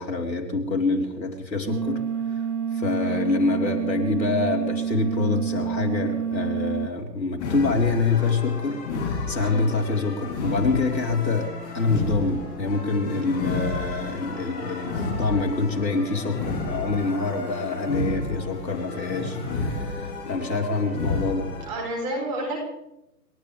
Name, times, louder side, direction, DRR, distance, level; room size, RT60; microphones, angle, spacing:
voice 1, 0.0-2.0 2.3-2.4 2.7-11.5 11.7-21.5, left 3 dB, 85° left, 1 dB, 4.1 m, -26 dB
sound 1, 1.7-6.9, right 7 dB, 65° right, 1.2 m, -28 dB
voice 2, 3.0-3.3 9.4-9.7 21.7-22.6, right 1 dB, 15° right, 0 dB, 3.7 m, -30 dB
sound 2, 7.4-21.7, left 3 dB, 25° left, 7.7 m, -31 dB
29.5 x 13.0 x 3.4 m, 0.86 s
hypercardioid pair, 160°, 50 cm